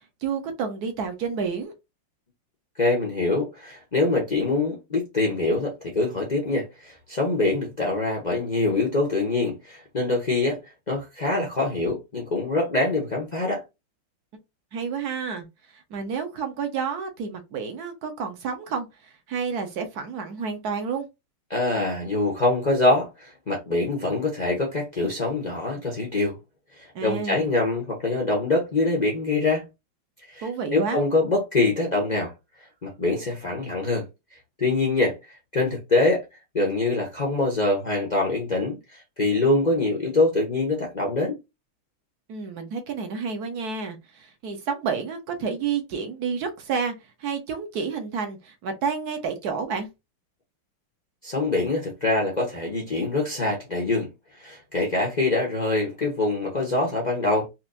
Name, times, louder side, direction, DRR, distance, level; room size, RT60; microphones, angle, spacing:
voice 1, 0.2-1.7 14.7-21.1 26.9-27.5 30.4-31.0 42.3-46.9 47.2-49.9, right 5 dB, 60° right, 1.1 m, -30 dB
voice 2, 2.8-10.6 10.9-13.6 21.5-26.3 26.8-29.6 30.3-32.3 32.8-34.1 34.6-35.2 35.5-36.2 36.5-41.3 51.2-54.1 54.4-57.5, left 2 dB, 60° left, 0.4 m, -24 dB
4.4 x 2.6 x 2.5 m
omnidirectional pair, 2.3 m